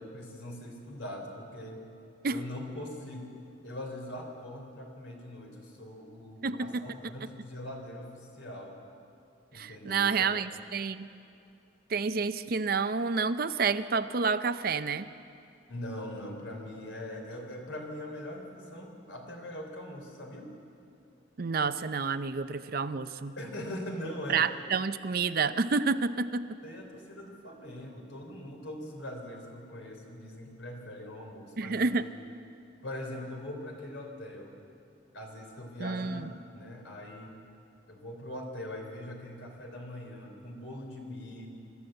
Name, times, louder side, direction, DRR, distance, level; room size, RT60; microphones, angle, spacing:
voice 1, 0.0-1.8 2.3-3.3 3.6-8.8 9.5-10.3 15.7-20.5 23.4-24.5 26.6-32.1 32.8-34.6 35.1-36.2 36.5-37.4 37.9-41.5, left 1 dB, 75° left, 2 dB, 3.7 m, -41 dB
voice 2, 6.4-6.9 9.5-11.1 11.9-15.1 21.4-23.3 24.3-26.6 31.6-32.1 35.8-36.3, right 4 dB, 50° right, 12 dB, 0.6 m, -29 dB
24.5 x 13.0 x 7.9 m, 2.7 s
head